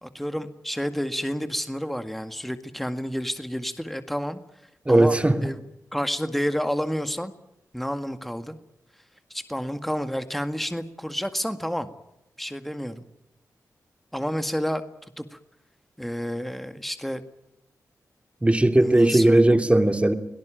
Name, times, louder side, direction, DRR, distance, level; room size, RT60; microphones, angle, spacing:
voice 1, 0.0-4.4 4.9-5.6 5.9-7.3 7.7-8.6 9.3-11.9 12.4-13.0 14.1-14.8 15.2-15.4 16.0-17.2 18.8-19.6, equal, ahead, 1.8 m, -30 dB
voice 2, 4.9-5.4 18.4-20.1, right 1 dB, 20° right, 2.9 m, -18 dB
23.5 x 18.0 x 9.1 m
cardioid pair, 55°, 6 cm